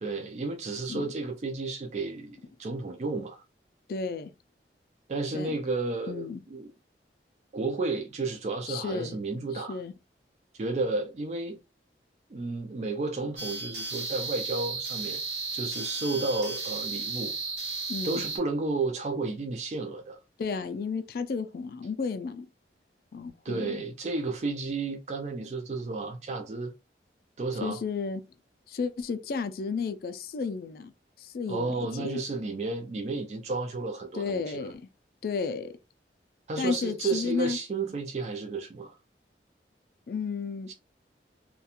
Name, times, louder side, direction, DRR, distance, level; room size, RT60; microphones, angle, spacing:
voice 1, 0.0-3.4 5.1-6.7 7.5-9.8 10.6-11.6 12.3-15.2 15.5-17.3 18.0-20.2 23.4-26.7 27.4-27.8 31.5-34.6 36.5-39.0 40.7-40.8, right 3 dB, 40° right, 0.3 m, -32 dB
voice 2, 3.9-4.3 5.3-5.5 6.1-6.4 8.7-9.2 9.5-9.9 17.9-18.2 20.4-22.5 23.1-23.8 27.6-28.2 28.7-30.9 31.2-32.2 34.1-34.8 35.2-35.7 36.6-37.6 40.1-40.7, left 5 dB, 55° left, 0.3 m, -32 dB
sound 1, 13.4-18.4, right 3 dB, 70° right, 1.0 m, -34 dB
2.4 x 2.2 x 2.8 m
head